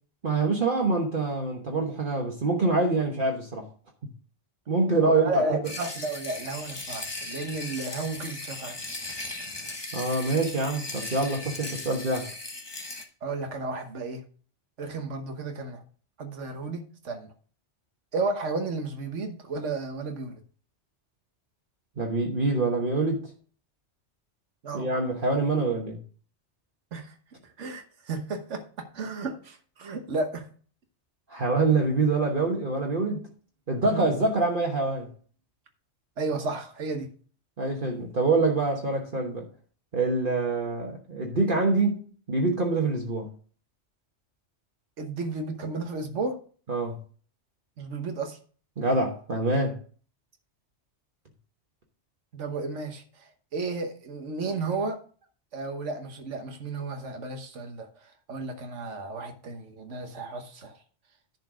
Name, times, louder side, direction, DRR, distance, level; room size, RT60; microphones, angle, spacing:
voice 1, 0.2-3.6 4.7-5.6 9.9-12.3 22.0-23.2 24.7-26.0 31.3-33.2 33.7-35.1 37.6-39.5 39.9-42.0 42.3-43.3 46.7-46.9 48.8-49.7, right 3 dB, 45° right, 1.4 m, -25 dB
voice 2, 5.0-8.8 13.2-14.2 14.8-15.8 16.2-17.3 18.1-20.4 24.6-24.9 26.9-27.1 27.6-30.5 33.9-34.1 36.2-37.1 45.0-46.4 47.8-48.4 52.3-53.0 53.5-55.0 55.5-57.9 58.3-60.8, right 3 dB, 90° right, 1.5 m, -33 dB
sound 1, 5.6-13.0, left 2 dB, 20° left, 1.1 m, -38 dB
10.5 x 4.4 x 6.1 m
omnidirectional pair, 1.2 m